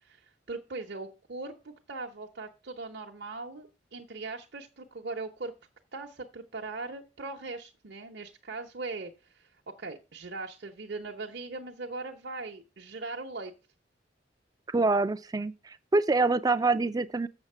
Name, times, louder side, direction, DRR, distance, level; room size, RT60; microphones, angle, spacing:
voice 1, 0.0-5.5 5.9-9.5 9.8-13.5, right 3 dB, 65° right, 0.9 m, -40 dB
voice 2, 14.7-17.3, right 3 dB, 20° right, 0.4 m, -26 dB
7.0 x 6.6 x 5.5 m
head